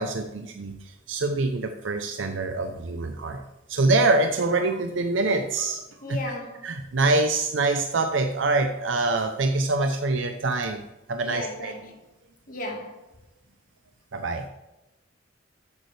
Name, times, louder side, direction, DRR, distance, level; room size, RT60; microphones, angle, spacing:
voice 1, 0.0-3.4 3.7-5.8 6.1-6.2 6.6-11.7 14.1-14.5, right 2 dB, 75° right, 0.7 m, -25 dB
voice 2, 6.0-6.6 11.2-12.0 12.5-13.0, left 1 dB, 45° left, 1.6 m, -35 dB
13.0 x 8.4 x 3.3 m
head